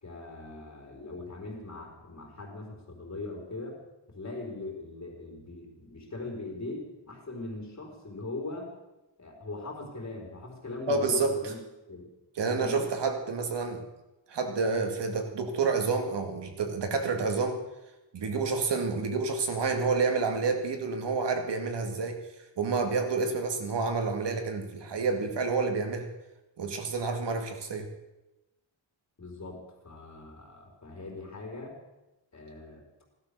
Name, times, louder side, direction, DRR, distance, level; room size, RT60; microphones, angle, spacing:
voice 1, 0.0-3.8 4.1-8.7 9.2-11.6 11.9-12.1 12.4-12.9 29.2-31.8 32.3-32.8, left 2 dB, 35° left, 0 dB, 4.1 m, -40 dB
voice 2, 10.9-11.4 12.4-13.8 14.3-17.6 18.1-22.2 22.6-26.1 26.6-27.9, right 4 dB, 60° right, 5 dB, 2.2 m, -29 dB
16.5 x 12.0 x 6.8 m, 0.99 s
wide cardioid pair, 170°, 46 cm